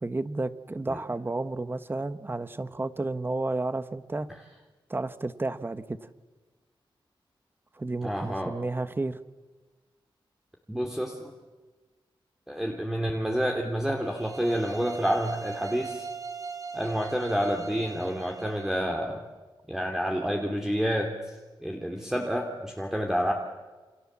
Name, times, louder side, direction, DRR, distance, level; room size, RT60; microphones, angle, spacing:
voice 1, 0.0-4.3 4.9-6.0 7.8-9.2, right 2 dB, 25° right, 12 dB, 1.3 m, -31 dB
voice 2, 8.0-8.6 10.7-11.3 12.5-16.1 16.7-19.2 19.7-21.4 21.6-23.3, equal, 5° right, 1 dB, 2.7 m, -29 dB
sound 1, 14.0-18.8, right 5 dB, 40° right, 2.3 m, -39 dB
29.0 x 27.5 x 7.5 m, 1.3 s
wide cardioid pair, 130°, 9 cm